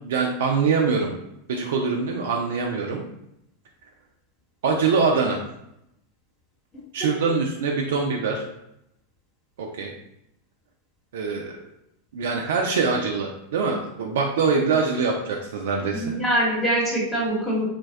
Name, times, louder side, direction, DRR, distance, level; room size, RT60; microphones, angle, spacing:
voice 1, 0.0-1.1 1.5-3.0 4.6-5.4 6.9-8.5 9.6-9.9 11.1-11.6 12.1-16.2, right 5 dB, 70° right, 0 dB, 0.3 m, -24 dB
voice 2, 15.9-17.7, right 1 dB, 20° left, -5 dB, 0.9 m, -24 dB
2.5 x 2.1 x 2.3 m, 0.82 s
hypercardioid pair, 95°, 0 cm